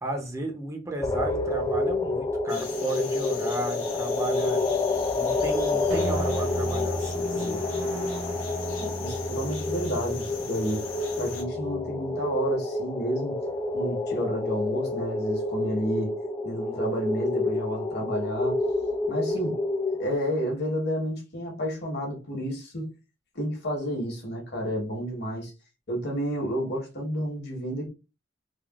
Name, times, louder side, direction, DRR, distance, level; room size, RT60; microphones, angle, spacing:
voice 1, 0.0-4.6 5.1-7.6, right 2 dB, 15° right, 0.6 m, -33 dB
sound 1, 1.0-20.1, left 2 dB, 20° left, 0.3 m, -29 dB
sound 2, 2.5-11.4, left 4 dB, 85° left, 0.8 m, -40 dB
sound 3, 5.9-12.4, right 2 dB, 80° right, 0.5 m, -36 dB
voice 2, 8.8-10.8 11.2-13.4 13.7-16.1 16.4-18.6 19.1-19.6 20.0-22.9 23.3-25.5 25.9-27.9, equal, 55° left, 1.2 m, -30 dB
3.4 x 2.3 x 2.3 m
head